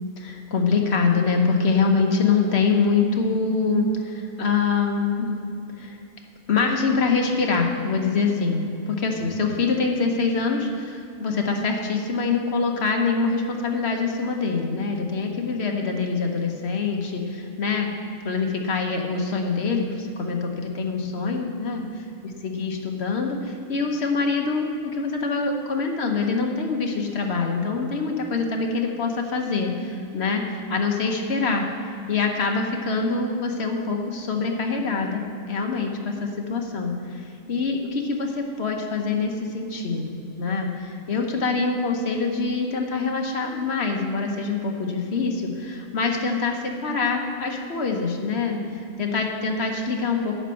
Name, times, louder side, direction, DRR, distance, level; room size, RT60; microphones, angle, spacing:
voice 1, 0.2-6.0 6.5-8.6 8.9-17.9 18.2-31.7 32.1-35.2 35.5-50.4, left 4 dB, 50° left, 2 dB, 1.2 m, -25 dB
11.0 x 5.5 x 7.6 m, 2.6 s
omnidirectional pair, 1.5 m